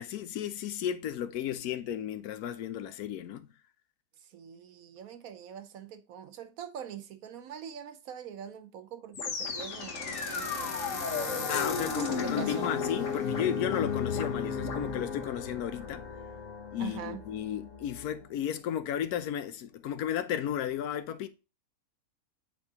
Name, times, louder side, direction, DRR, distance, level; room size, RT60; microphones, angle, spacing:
voice 1, 0.0-3.5 11.5-16.1 16.7-21.3, left 10 dB, 80° left, 1.1 m, -34 dB
voice 2, 4.2-12.8 16.8-17.2, right 9 dB, 70° right, 1.2 m, -43 dB
sound 1, 9.1-18.3, left 5 dB, 60° left, 1.4 m, -34 dB
sound 2, 11.5-13.0, left 3 dB, 40° left, 0.4 m, -44 dB
8.6 x 4.2 x 2.8 m
omnidirectional pair, 1.6 m